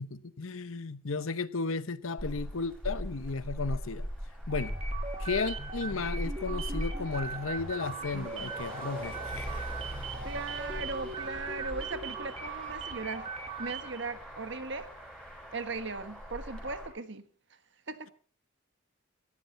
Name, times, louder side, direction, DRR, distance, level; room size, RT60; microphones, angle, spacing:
voice 1, 0.0-4.1 4.5-4.8 5.2-9.7, left 4 dB, 85° left, 0.9 m, -34 dB
Motor vehicle (road), 2.2-16.9, equal, 5° left, 7.9 m, -40 dB
sound 1, 4.5-14.1, right 4 dB, 30° right, 1.6 m, -40 dB
voice 2, 10.2-13.3 13.6-14.9 15.5-17.2 17.9-18.1, right 3 dB, 60° right, 1.5 m, -38 dB
18.0 x 15.0 x 4.3 m
head